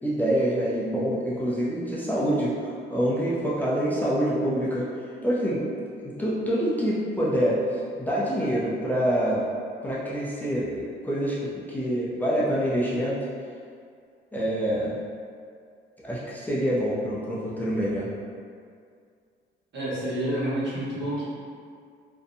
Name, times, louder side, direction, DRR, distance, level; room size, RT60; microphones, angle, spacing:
voice 1, 0.0-2.5 2.9-4.8 5.2-5.6 6.0-9.4 9.8-13.2 14.3-15.0 16.0-18.1, equal, 10° left, -7 dB, 0.4 m, -26 dB
voice 2, 19.7-21.3, right 1 dB, 65° right, -9 dB, 1.1 m, -28 dB
2.6 x 2.1 x 2.5 m, 2.2 s
cardioid pair, 90°, 20 cm